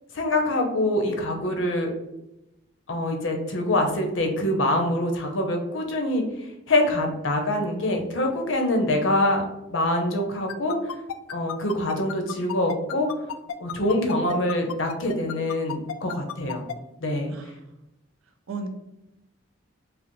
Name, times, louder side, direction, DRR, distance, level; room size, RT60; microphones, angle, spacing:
voice 1, 0.1-1.9 2.9-6.2 6.7-9.4 9.7-10.8 11.3-13.1 13.6-16.6 17.0-17.3, left 1 dB, 70° left, 3 dB, 0.7 m, -25 dB
sound 1, 10.5-16.7, left 9 dB, 90° left, 0.3 m, -32 dB
voice 2, 17.3-17.7 18.5-18.7, right 3 dB, 85° right, 6 dB, 0.5 m, -35 dB
4.9 x 2.0 x 3.0 m, 0.88 s
head